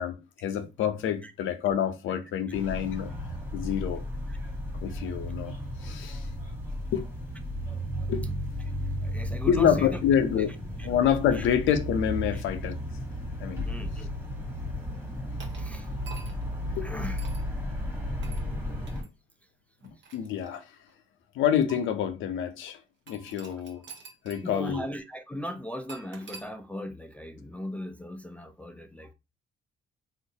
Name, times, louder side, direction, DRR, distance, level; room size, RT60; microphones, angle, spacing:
voice 1, 0.0-3.1 3.5-4.1 4.8-5.5 5.8-6.3 6.9-7.1 8.1-8.3 9.5-10.5 10.8-12.8 13.4-13.6 16.8-16.9 19.8-20.6 21.3-22.8 23.1-23.8 24.2-24.9, left 9 dB, 85° left, 0.6 m, -27 dB
sound 1, 2.5-19.0, left 1 dB, 10° right, 1.3 m, -34 dB
voice 2, 9.0-10.0 10.4-10.5 10.8-10.9 11.3-11.5 12.3-12.4 13.6-14.1 14.6-14.7 15.6-15.9 16.8-17.3 24.4-29.1, equal, 5° left, 0.3 m, -38 dB
sound 2, 15.4-16.5 17.2-17.5 18.2-18.5 18.9-19.1 19.8-20.9 21.7-21.8 23.1-24.5 24.7-24.8 25.9-26.5, right 5 dB, 65° right, 0.8 m, -47 dB
3.6 x 2.3 x 2.7 m
cardioid pair, 90°, 20 cm